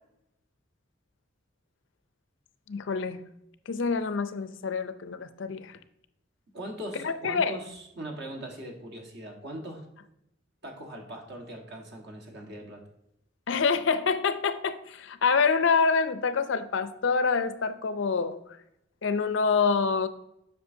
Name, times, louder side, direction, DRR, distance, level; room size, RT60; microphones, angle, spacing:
voice 1, 2.7-3.2 3.7-5.8 7.0-7.6 13.5-18.4 19.0-20.1, left 5 dB, 65° left, 11 dB, 0.5 m, -26 dB
voice 2, 6.5-9.8 10.6-12.8, right 1 dB, 60° right, 1 dB, 1.4 m, -40 dB
7.8 x 5.9 x 2.7 m, 0.81 s
head